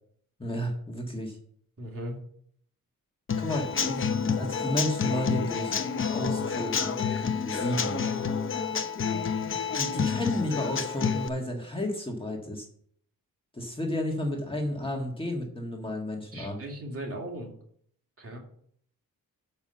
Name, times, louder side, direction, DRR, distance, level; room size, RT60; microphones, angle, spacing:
voice 1, 0.4-1.4 3.4-5.8 6.1-7.0 7.4-8.0 9.7-12.7 13.5-16.6, left 1 dB, 15° left, 0 dB, 1.7 m, -32 dB
voice 2, 1.8-2.2 16.3-17.5 18.2-18.4, right 1 dB, 40° right, 0 dB, 2.7 m, -37 dB
Human voice / Acoustic guitar / Drum, 3.3-11.3, left 6 dB, 35° left, 0.7 m, -29 dB
7.0 x 5.6 x 6.8 m, 0.63 s
cardioid pair, 95°, 35 cm